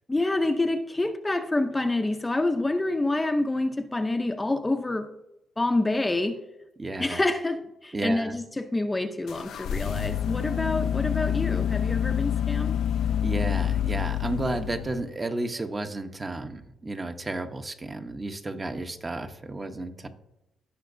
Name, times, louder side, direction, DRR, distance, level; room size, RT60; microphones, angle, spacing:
voice 1, 0.1-5.1 5.6-6.4 7.0-12.8, left 2 dB, 15° left, 7 dB, 0.6 m, -27 dB
voice 2, 6.8-7.2 7.9-8.3 13.2-20.1, right 2 dB, 25° right, 7 dB, 0.9 m, -32 dB
sound 1, 9.3-15.2, left 10 dB, 70° left, 0.4 m, -27 dB
17.0 x 5.8 x 2.6 m, 0.90 s
cardioid pair, 90°, 0 cm